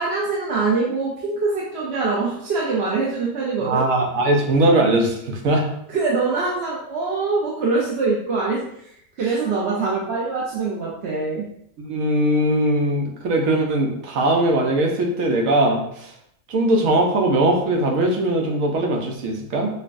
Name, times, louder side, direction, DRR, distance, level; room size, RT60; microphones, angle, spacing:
voice 1, 0.0-3.8 5.9-8.6 9.2-11.4, right 3 dB, 60° right, -4 dB, 0.9 m, -23 dB
voice 2, 3.6-5.7 11.8-16.1 16.5-19.7, right 1 dB, 85° right, 1 dB, 1.2 m, -20 dB
5.4 x 2.2 x 2.5 m, 0.71 s
omnidirectional pair, 1.4 m